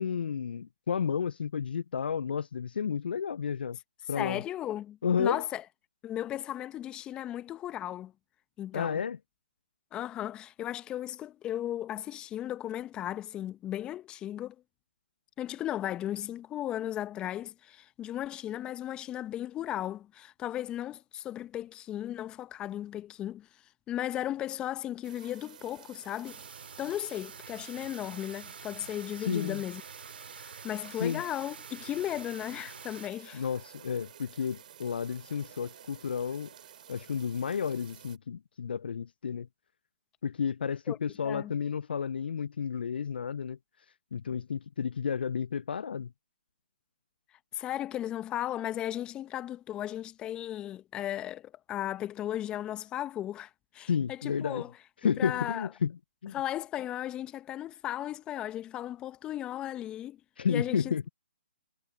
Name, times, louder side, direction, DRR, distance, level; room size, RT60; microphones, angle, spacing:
voice 1, 0.0-3.8 4.1-4.4 5.0-5.4 8.7-9.2 29.2-29.6 31.0-31.2 33.3-36.5 36.9-39.5 40.2-43.6 44.1-46.1 53.9-54.6 55.0-55.9 56.2-56.3 60.4-61.0, left 7 dB, 60° left, 0.5 m, -31 dB
voice 2, 4.1-5.6 6.0-8.1 8.6-9.0 9.9-14.6 15.4-23.5 23.9-26.4 26.8-29.8 30.4-33.5 40.9-41.0 41.2-41.5 47.5-54.7 55.2-55.7 56.3-60.2 60.5-60.9, left 12 dB, 15° left, 1.3 m, -36 dB
sound 1, 25.0-38.2, right 9 dB, 45° right, 4.7 m, -52 dB
sound 2, 26.2-33.1, right 6 dB, 65° right, 2.9 m, -47 dB
figure-of-eight pair, 140°, 6 cm